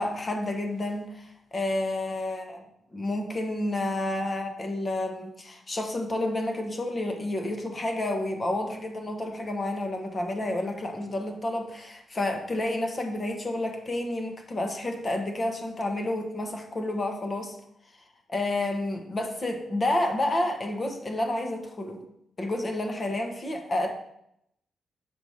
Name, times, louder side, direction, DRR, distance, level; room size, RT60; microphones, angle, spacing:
voice 1, 0.0-2.6 2.9-17.6 18.3-22.0 22.4-23.9, left 1 dB, 25° left, 3 dB, 1.1 m, -30 dB
7.0 x 4.8 x 5.0 m, 0.76 s
wide cardioid pair, 170°, 0 cm